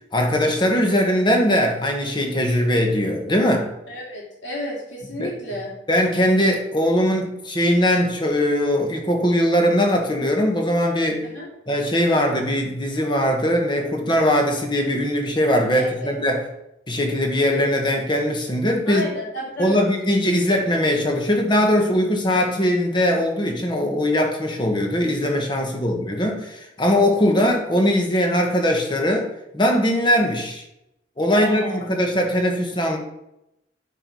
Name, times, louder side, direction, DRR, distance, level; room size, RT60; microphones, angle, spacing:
voice 1, 0.1-3.7 5.2-5.3 5.9-11.3 11.7-16.4 16.9-19.0 19.6-29.3 29.5-30.6 31.2-33.0, equal, 25° left, 2 dB, 1.4 m, -20 dB
voice 2, 3.9-5.7 11.2-11.5 15.8-16.1 18.9-19.9 25.6-25.9 31.3-31.8, left 1 dB, 80° left, -3 dB, 3.2 m, -32 dB
8.4 x 4.8 x 5.5 m, 0.85 s
head